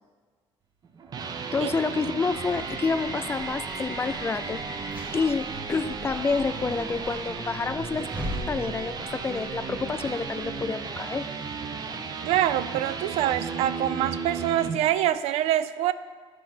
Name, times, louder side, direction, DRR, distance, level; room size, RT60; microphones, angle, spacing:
sound 1, 0.8-14.8, right 5 dB, 40° right, 0.7 m, -34 dB
voice 1, 1.5-4.6 5.1-8.1 8.5-11.3, left 4 dB, 20° left, 12 dB, 0.3 m, -28 dB
sound 2, 2.3-10.7, equal, 15° right, 1.6 m, -40 dB
voice 2, 12.3-15.9, right 12 dB, 80° right, 14 dB, 0.4 m, -25 dB
9.9 x 4.6 x 5.9 m, 1.5 s
cardioid pair, 105°, 11 cm